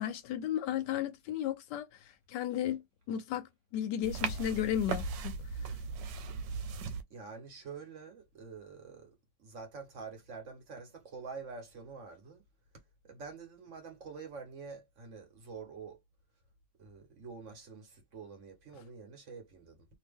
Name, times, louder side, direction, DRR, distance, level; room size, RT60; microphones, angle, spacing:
voice 1, 0.0-5.3 5.7-5.8, left 11 dB, 75° left, 1.1 m, -34 dB
sound 1, 4.0-7.0, right 5 dB, 90° right, 1.3 m, -37 dB
voice 2, 7.1-12.4 13.0-16.0 16.8-19.9, right 5 dB, 50° right, 1.3 m, -47 dB
2.8 x 2.8 x 3.5 m
omnidirectional pair, 1.9 m